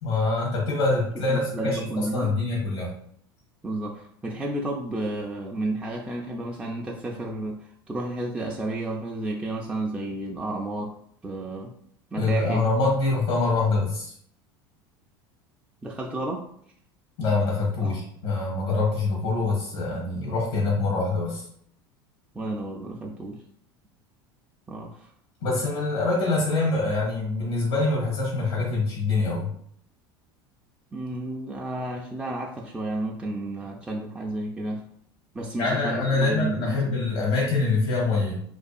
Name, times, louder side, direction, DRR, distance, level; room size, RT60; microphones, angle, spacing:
voice 1, 0.0-2.9 12.2-14.1 17.2-21.4 25.4-29.5 35.6-38.4, left 3 dB, 70° left, -3 dB, 0.8 m, -25 dB
voice 2, 1.3-2.3 3.6-11.0 11.2-11.7 12.1-12.7 15.8-16.5 17.8-17.9 22.3-23.4 24.7-25.1 30.9-34.8 35.3-37.0, right 2 dB, 10° right, -1 dB, 0.3 m, -31 dB
2.5 x 2.3 x 2.3 m, 0.64 s
hypercardioid pair, 80°, 13 cm